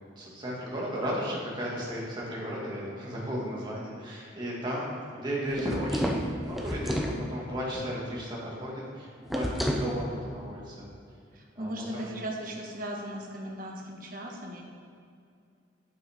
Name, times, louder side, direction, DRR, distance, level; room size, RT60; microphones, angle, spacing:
voice 1, 0.2-10.9 11.6-12.2, equal, 25° right, -5 dB, 2.2 m, -35 dB
sound 1, 5.5-7.2 9.3-9.9, equal, ahead, 0.7 m, -30 dB
voice 2, 11.3-14.6, equal, 45° right, -1 dB, 1.5 m, -37 dB
9.4 x 9.1 x 3.7 m, 2.4 s
head